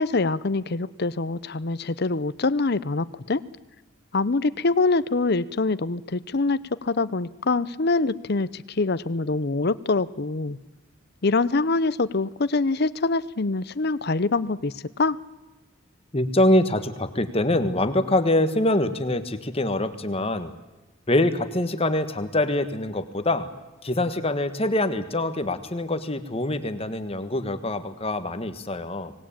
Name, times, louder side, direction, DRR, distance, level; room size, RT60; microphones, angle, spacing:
voice 1, 0.0-3.4 4.1-10.6 11.2-15.2, left 3 dB, 50° left, 16 dB, 0.7 m, -24 dB
voice 2, 16.1-20.5 21.1-23.5 23.8-29.1, left 1 dB, 30° left, 10 dB, 1.4 m, -24 dB
25.0 x 19.0 x 8.8 m, 1.1 s
head